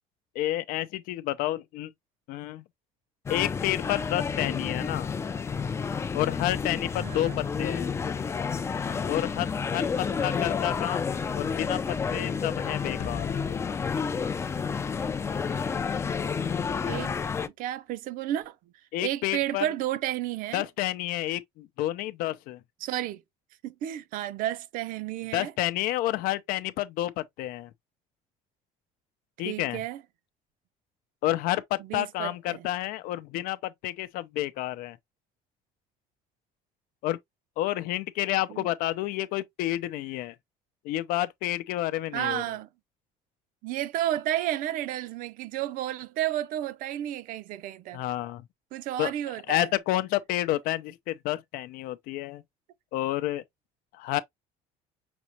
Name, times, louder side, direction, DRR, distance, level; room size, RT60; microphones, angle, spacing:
voice 1, 0.3-1.9 2.3-2.6 3.3-5.1 6.1-7.9 9.1-11.1 11.3-13.3 18.9-19.7 20.5-22.6 25.3-27.7 29.4-29.8 31.2-35.0 37.0-37.2 37.6-40.3 40.8-42.4 47.9-48.4 49.0-49.1 49.5-52.4 52.9-53.4 53.9-54.2, left 15 dB, 80° left, 0.6 m, -30 dB
sound 1, 3.3-17.5, left 6 dB, 20° left, 0.4 m, -30 dB
voice 2, 7.0-7.4 10.0-10.5 16.8-17.1 17.6-18.5 19.0-20.7 22.8-23.2 23.6-25.5 29.4-30.0 31.8-32.7 38.5-38.7 42.1-42.7 43.6-48.0 48.7-49.7, right 13 dB, 70° right, 0.7 m, -32 dB
sound 2, 13.0-15.5, left 7 dB, 50° left, 0.9 m, -43 dB
6.1 x 3.0 x 2.8 m
cardioid pair, 155°, 15 cm